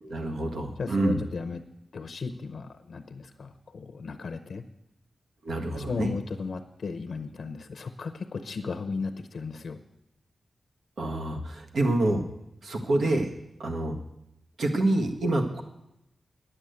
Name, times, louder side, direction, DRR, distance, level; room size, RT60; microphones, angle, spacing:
voice 1, 0.0-1.2 5.4-6.1 11.0-12.2 12.6-13.3 13.6-13.9 14.6-15.6, right 2 dB, 75° right, 3 dB, 1.6 m, -27 dB
voice 2, 0.8-1.6 1.9-4.6 5.7-9.8, left 4 dB, 65° left, 8 dB, 0.7 m, -35 dB
10.0 x 8.7 x 8.0 m, 0.87 s
wide cardioid pair, 160°, 0 cm